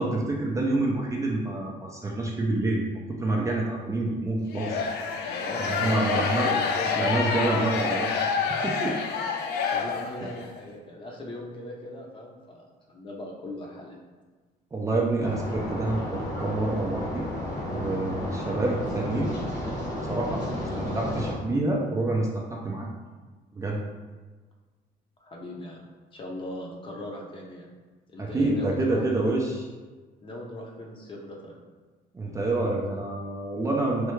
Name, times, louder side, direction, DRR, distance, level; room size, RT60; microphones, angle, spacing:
voice 1, 0.0-2.8 3.2-4.8 5.6-6.6 6.8-8.3 8.6-8.9 10.2-10.3 14.7-17.3 17.7-19.4 20.0-22.9 23.5-23.8 28.2-29.7 32.1-34.1, right 2 dB, 20° right, -2 dB, 0.4 m, -27 dB
sound 1, 4.5-10.4, left 5 dB, 75° left, 0.4 m, -28 dB
voice 2, 5.4-7.2 9.7-14.0 25.2-25.8 26.1-27.7 28.1-29.1 30.2-31.6, left 1 dB, 30° left, -1 dB, 0.7 m, -39 dB
sound 2, 15.2-21.3, left 1 dB, 90° left, 1.2 m, -32 dB
3.2 x 2.3 x 3.1 m, 1.3 s
cardioid pair, 110°, 17 cm